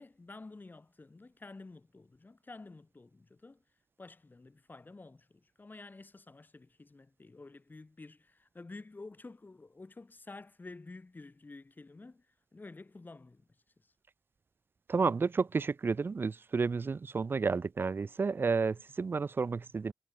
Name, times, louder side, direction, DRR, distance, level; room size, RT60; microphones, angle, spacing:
voice 1, 0.0-3.6 4.0-13.9, left 3 dB, 35° left, 5.3 m, -51 dB
voice 2, 14.9-19.9, right 4 dB, 45° right, 0.4 m, -31 dB
cardioid pair, 50°, 5 cm